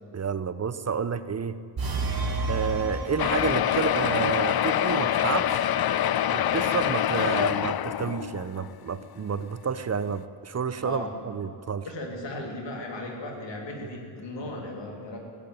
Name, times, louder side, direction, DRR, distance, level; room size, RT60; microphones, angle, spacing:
voice 1, 0.1-1.6 2.5-5.7 6.3-11.9, right 6 dB, 40° right, 13 dB, 0.6 m, -30 dB
sound 1, 1.8-4.0, right 2 dB, 55° right, 2.0 m, -30 dB
sound 2, 3.2-8.6 9.3-9.4 9.7-9.8 10.1-10.2, left 11 dB, 60° left, 0.5 m, -25 dB
voice 2, 10.8-11.1 11.8-15.2, left 1 dB, 85° left, 1 dB, 3.0 m, -36 dB
16.0 x 8.8 x 10.0 m, 2.6 s
wide cardioid pair, 105°, 42 cm